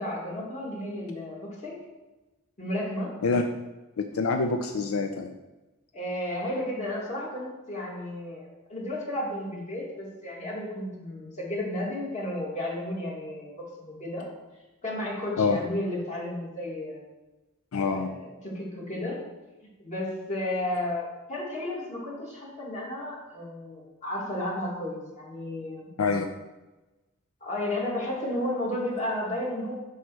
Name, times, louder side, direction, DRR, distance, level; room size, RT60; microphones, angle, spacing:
voice 1, 0.0-1.8 2.6-3.1 5.9-14.3 14.8-17.0 17.8-19.2 19.6-25.9 27.4-29.7, left 1 dB, 35° left, -4 dB, 2.1 m, -33 dB
voice 2, 4.0-5.3 15.4-15.6 17.7-18.2 26.0-26.3, left 4 dB, 80° left, 5 dB, 0.5 m, -26 dB
7.8 x 3.1 x 6.2 m, 1.1 s
head